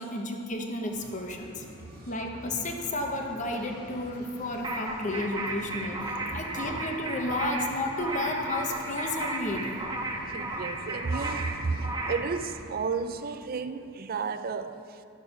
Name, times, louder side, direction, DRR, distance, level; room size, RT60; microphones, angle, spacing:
voice 1, 0.0-1.6 2.1-9.7, left 1 dB, 40° left, 0.9 m, -32 dB
sound 1, 0.9-12.8, equal, 75° left, 2.6 m, -46 dB
sound 2, 4.6-12.3, right 2 dB, 20° right, 0.8 m, -34 dB
voice 2, 10.3-14.7, right 4 dB, 45° right, 0.4 m, -32 dB
12.0 x 6.5 x 5.3 m
head